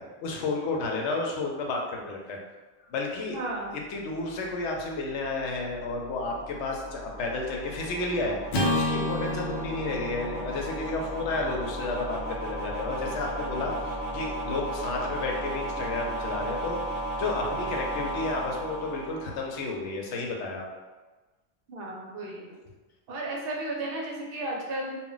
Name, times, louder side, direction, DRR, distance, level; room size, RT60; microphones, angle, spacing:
voice 1, 0.0-2.4 2.9-3.4 3.9-8.4 8.7-16.8 17.2-20.7, left 3 dB, 90° left, 0 dB, 0.9 m, -32 dB
voice 2, 3.3-3.7 12.1-12.3 21.7-22.6 23.1-25.0, right 2 dB, 65° right, -1 dB, 0.7 m, -34 dB
sound 1, 3.6-19.8, right 1 dB, 35° right, 0.8 m, -35 dB
Acoustic guitar / Strum, 8.5-12.9, left 1 dB, 65° left, 0.8 m, -32 dB
2.2 x 2.1 x 3.7 m, 1.2 s
omnidirectional pair, 1.1 m